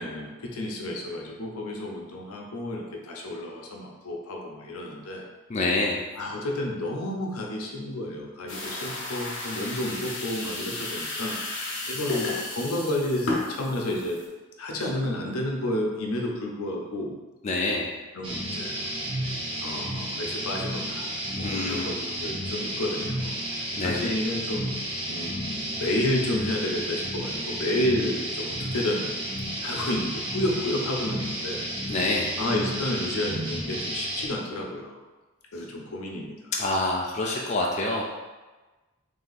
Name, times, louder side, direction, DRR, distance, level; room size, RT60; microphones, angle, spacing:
voice 1, 0.0-5.2 6.1-14.2 14.6-17.1 18.1-18.9 19.6-21.1 21.3-24.7 25.1-29.1 29.6-31.6 32.4-35.0 35.5-36.5, left 1 dB, 85° left, 0 dB, 0.7 m, -31 dB
voice 2, 5.5-6.0 17.4-17.9 21.4-22.0 23.8-24.2 31.9-32.4 36.5-38.0, left 2 dB, 30° left, -2 dB, 0.4 m, -27 dB
sound 1, 8.5-14.3, left 2 dB, 55° left, 0.8 m, -33 dB
sound 2, 18.2-34.3, right 1 dB, 25° right, 0.7 m, -32 dB
3.4 x 2.8 x 3.9 m, 1.2 s
head